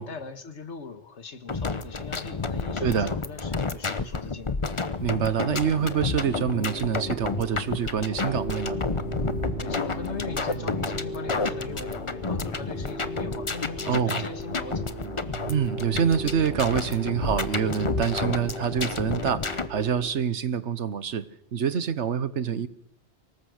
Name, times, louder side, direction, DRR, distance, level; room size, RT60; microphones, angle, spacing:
voice 1, 0.0-4.6 9.6-15.1, left 4 dB, 80° left, 1.9 m, -39 dB
sound 1, 1.5-19.7, left 4 dB, 30° left, 0.9 m, -31 dB
voice 2, 2.8-3.1 5.0-8.8 13.9-14.2 15.5-21.2 21.5-22.7, right 7 dB, 80° right, 1.3 m, -26 dB
sound 2, 5.5-20.1, right 2 dB, 55° right, 7.8 m, -37 dB
24.5 x 20.5 x 6.5 m
omnidirectional pair, 1.2 m